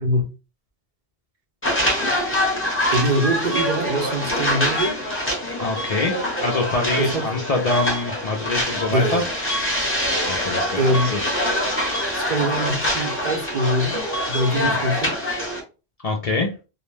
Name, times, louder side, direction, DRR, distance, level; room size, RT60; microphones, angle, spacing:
sound 1, 1.6-15.6, left 1 dB, 15° left, 0.6 m, -24 dB
voice 1, 2.9-5.0 7.0-7.3 8.9-9.2 10.8-11.1 12.1-15.2, equal, 55° right, 0.6 m, -23 dB
voice 2, 5.6-9.2 10.3-11.2 14.6-14.8 16.0-16.5, left 3 dB, 60° left, 0.4 m, -25 dB
2.4 x 2.1 x 3.1 m
omnidirectional pair, 1.2 m